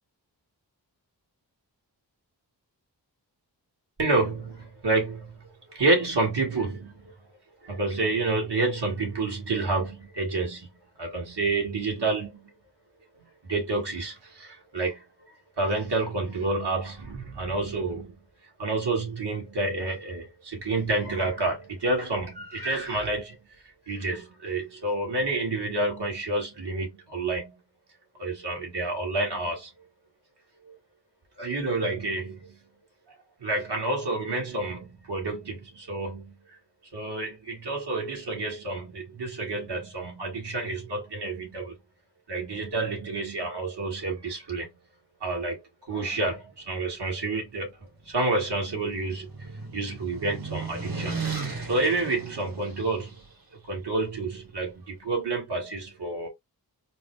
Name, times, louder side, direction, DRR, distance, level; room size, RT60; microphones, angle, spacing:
voice 1, 4.0-7.1 7.6-10.7 11.0-12.5 13.2-15.0 15.6-18.1 18.6-27.6 28.2-29.7 30.6-30.7 31.4-32.6 33.1-36.6 36.9-41.8 42.3-44.7 45.2-51.2 51.7-53.2 53.7-56.3, right 2 dB, 70° right, 2.2 m, -29 dB
sound 1, 48.0-53.2, right 4 dB, 50° right, 1.7 m, -36 dB
4.4 x 2.3 x 3.2 m
wide cardioid pair, 60°, 43 cm